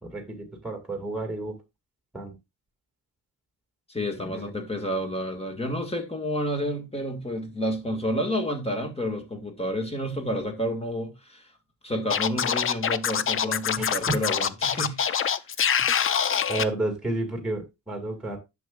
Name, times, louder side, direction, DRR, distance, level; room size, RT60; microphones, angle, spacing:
voice 1, 0.0-1.6 2.1-2.4 4.2-4.5 13.8-14.1 16.5-18.4, right 2 dB, ahead, 2.2 m, -31 dB
voice 2, 3.9-11.5 11.8-15.5, equal, 15° left, 1.8 m, -30 dB
Scratching (performance technique), 12.1-16.6, left 8 dB, 35° left, 0.5 m, -25 dB
11.0 x 7.1 x 2.4 m
wide cardioid pair, 165°, 39 cm